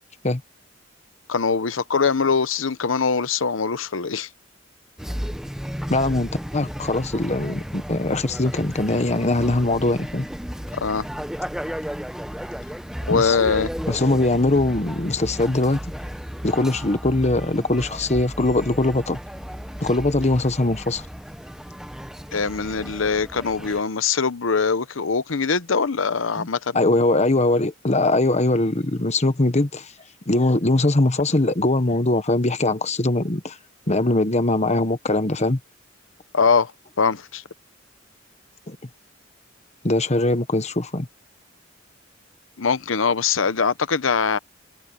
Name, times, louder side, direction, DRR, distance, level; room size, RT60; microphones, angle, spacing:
voice 1, 1.3-4.3 10.7-11.1 13.1-13.7 22.3-26.8 36.3-36.7 37.0-37.4 42.6-44.4, left 5 dB, 85° left, 0.9 m, -22 dB
sound 1, 5.0-23.8, equal, 5° right, 0.8 m, -34 dB
voice 2, 5.9-10.3 13.1-13.4 13.9-15.8 16.4-19.2 19.8-21.0 26.4-26.5 26.7-29.9 30.3-33.6 33.9-35.6 38.7-38.8 39.8-41.1, left 2 dB, 35° left, 1.3 m, -21 dB
head